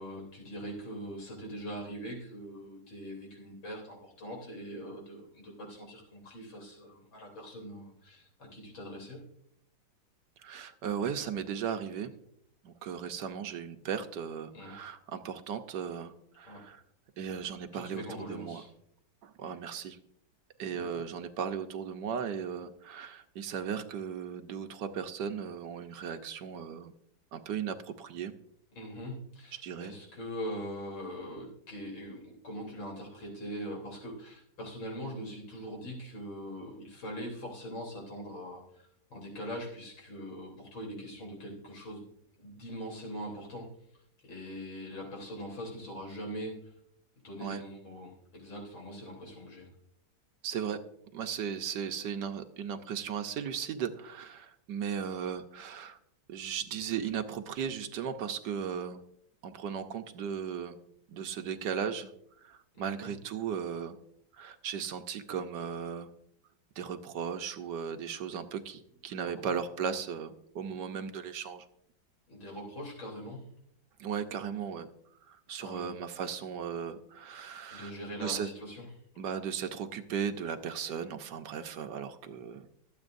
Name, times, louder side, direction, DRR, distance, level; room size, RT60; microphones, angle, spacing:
voice 1, 0.0-9.2 14.5-14.7 16.5-16.6 17.7-18.7 20.7-21.0 28.8-42.0 42.4-43.7 44.2-46.6 47.2-49.7 62.7-63.1 69.2-69.5 72.3-73.4 75.6-75.9 77.7-78.9, equal, 85° left, -1 dB, 4.2 m, -42 dB
voice 2, 10.4-12.1 12.6-16.8 17.2-18.6 19.2-20.0 20.6-26.9 27.3-28.3 29.6-29.9 47.4-47.6 50.4-50.8 51.1-56.0 56.3-59.0 59.4-60.8 61.1-62.1 62.4-64.0 64.3-66.1 66.8-71.6 74.0-74.9 75.2-77.9 78.2-78.5 79.2-82.7, right 7 dB, 70° right, 8 dB, 1.4 m, -36 dB
24.5 x 8.2 x 2.6 m, 0.69 s
omnidirectional pair, 2.1 m